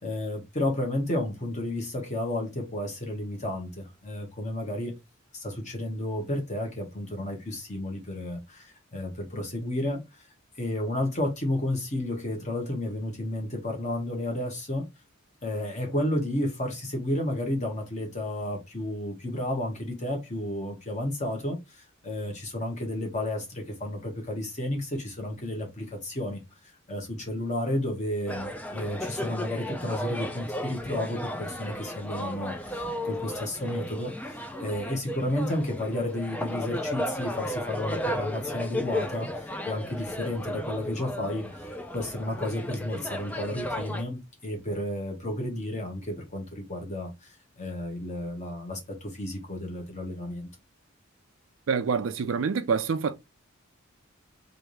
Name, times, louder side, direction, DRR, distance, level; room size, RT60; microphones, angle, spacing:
voice 1, 0.0-4.9 5.3-10.0 10.6-14.8 15.4-26.4 26.9-47.3 47.6-50.5, left 1 dB, 35° left, 1.3 m, -32 dB
sound 1, 28.3-44.0, left 1 dB, 5° left, 0.3 m, -34 dB
voice 2, 51.7-53.2, right 5 dB, 65° right, 0.4 m, -26 dB
3.4 x 2.7 x 3.1 m
head